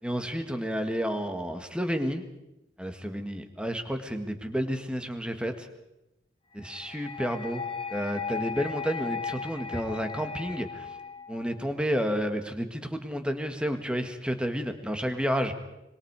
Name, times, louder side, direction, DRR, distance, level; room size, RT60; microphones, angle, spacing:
voice 1, 0.0-2.2 2.8-5.7 6.6-10.9 11.3-15.5, equal, 5° right, 7 dB, 1.9 m, -31 dB
sound 1, 6.6-11.6, left 5 dB, 30° left, 1.7 m, -37 dB
25.5 x 23.5 x 4.9 m, 0.92 s
head